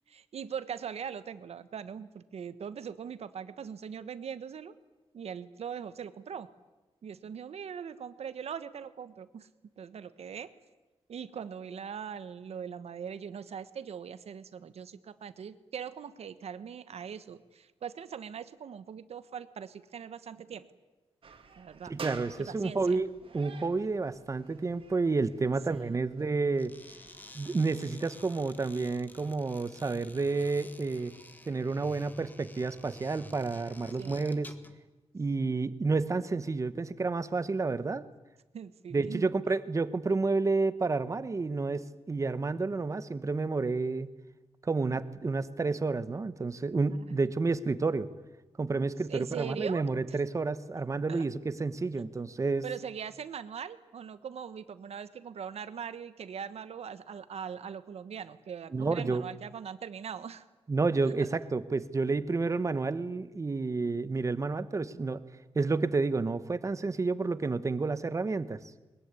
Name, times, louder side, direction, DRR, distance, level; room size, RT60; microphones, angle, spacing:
voice 1, 0.1-4.7 5.1-6.5 7.0-9.5 9.8-10.5 11.1-20.7 21.6-21.9 22.4-23.0 25.7-26.0 34.0-34.2 38.5-39.3 46.9-47.2 49.1-50.2 51.1-51.3 52.6-60.5 61.2-61.3, right 7 dB, 75° right, 13 dB, 1.3 m, -41 dB
sound 1, 21.2-27.3, right 5 dB, 60° right, 2.5 m, -49 dB
voice 2, 21.9-23.1 23.3-26.7 27.3-31.1 31.5-34.5 35.1-38.1 38.9-44.1 44.6-48.1 48.6-52.6 58.7-59.2 60.7-65.2 65.5-68.6, right 3 dB, 30° right, 14 dB, 1.1 m, -30 dB
sound 2, 26.5-34.8, left 1 dB, 15° left, 1.6 m, -51 dB
22.0 x 21.0 x 9.8 m, 1.1 s
wide cardioid pair, 155°, 11 cm